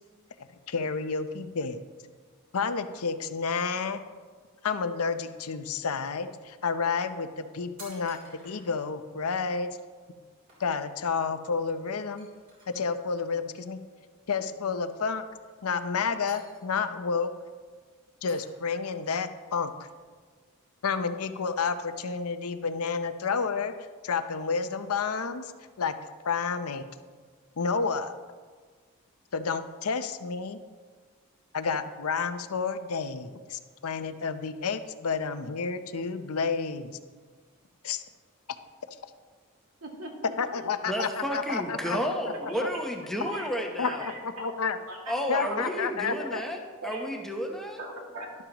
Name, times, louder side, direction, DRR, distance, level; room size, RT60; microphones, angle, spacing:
voice 1, 0.7-1.8 2.5-4.0 4.6-8.2 8.4-9.8 10.6-12.3 12.7-13.8 14.3-15.2 15.6-17.3 18.2-19.7 20.8-23.7 24.0-25.5 25.8-25.9 26.2-26.8 27.6-28.1 29.3-30.6 31.5-37.0 37.8-38.0 40.4-42.0 43.8-44.1 44.4-44.8 45.3-46.5, left 5 dB, 75° left, 10 dB, 0.7 m, -30 dB
sound 1, 6.3-6.4 7.1-7.2 7.4-8.9 9.5-9.6 10.0-10.2 10.5-11.0 11.3-11.4 11.7-11.8 12.2-13.1 14.3-14.7 15.2-15.9 16.3-17.0 17.4-17.7 18.3-18.9 19.3-20.6 20.9-22.9, right 2 dB, 40° right, 3.5 m, -55 dB
voice 2, 39.8-40.8 41.8-41.9 42.4-42.5 43.2-43.5 43.8-44.5 44.9-45.6 46.8-47.0 47.8-48.3, right 1 dB, 75° right, -1 dB, 2.2 m, -39 dB
voice 3, 40.9-44.1 45.1-47.8, equal, ahead, 1 dB, 0.9 m, -32 dB
12.0 x 12.0 x 3.0 m, 1.5 s
head